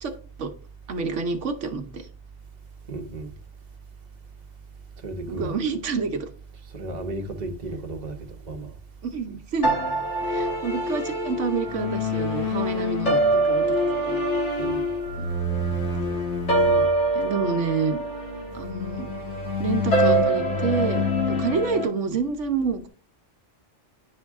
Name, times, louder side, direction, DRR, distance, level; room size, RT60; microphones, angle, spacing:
voice 1, 0.9-2.1 5.3-6.3 9.0-9.7 10.2-13.7 14.1-14.2 15.2-15.3 16.7-18.0 18.5-19.1 19.5-22.9, right 5 dB, 80° right, 1.2 m, -28 dB
voice 2, 2.9-3.3 5.0-5.6 6.7-8.2 8.4-8.7 14.6-14.8, right 2 dB, 40° right, 1.0 m, -33 dB
sound 1, 9.6-21.8, equal, 70° left, 2.4 m, -24 dB
9.7 x 5.4 x 3.5 m
omnidirectional pair, 1.3 m